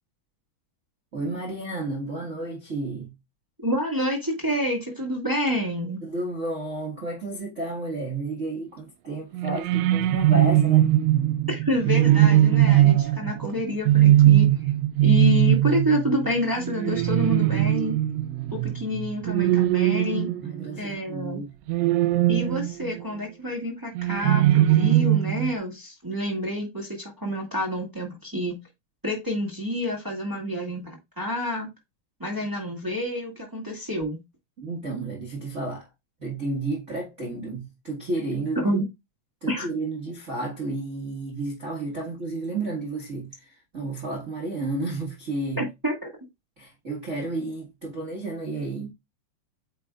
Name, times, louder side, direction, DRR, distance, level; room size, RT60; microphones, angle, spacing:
voice 1, 1.1-3.1 6.0-10.9 20.4-21.6 34.6-35.9 36.2-38.7 39.4-45.7 46.6-48.9, right 2 dB, 40° right, 1.0 m, -32 dB
voice 2, 3.6-6.0 11.5-14.5 15.0-17.9 18.5-20.3 20.8-21.4 22.3-28.6 29.0-31.7 32.2-34.2 38.6-38.8 39.5-39.7 45.6-46.1, left 1 dB, 15° right, 0.7 m, -28 dB
sound 1, 9.3-20.9 21.7-23.0 24.0-25.5, right 13 dB, 80° right, 1.7 m, -20 dB
8.6 x 5.0 x 2.4 m
omnidirectional pair, 3.7 m